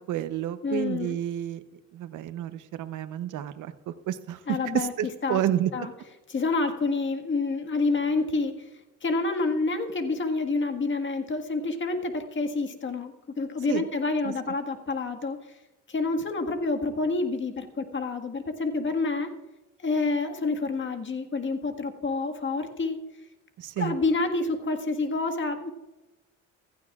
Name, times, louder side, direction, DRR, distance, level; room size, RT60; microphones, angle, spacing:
voice 1, 0.1-1.6 1.9-5.7 13.7-13.9 14.2-14.3 23.6-23.9, right 11 dB, 80° right, 11 dB, 0.8 m, -30 dB
voice 2, 0.6-1.2 4.5-4.9 5.2-5.4 5.7-5.9 6.3-8.7 9.0-15.4 15.9-19.3 19.8-23.0 23.8-25.7, left 3 dB, 40° left, 5 dB, 1.7 m, -28 dB
16.0 x 14.5 x 2.4 m, 1.1 s
cardioid pair, 90°, 30 cm